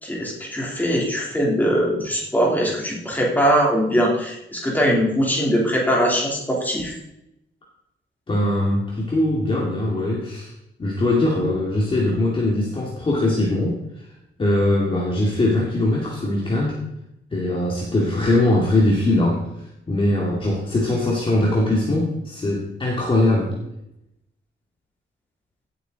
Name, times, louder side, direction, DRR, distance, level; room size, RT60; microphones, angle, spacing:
voice 1, 0.0-6.9, equal, 10° left, -3 dB, 3.3 m, -21 dB
voice 2, 8.3-10.5 10.8-13.8 14.4-16.8 17.3-19.6 19.9-23.5, left 1 dB, 25° left, -3 dB, 2.2 m, -21 dB
17.0 x 8.4 x 4.0 m, 0.84 s
wide cardioid pair, 165°, 21 cm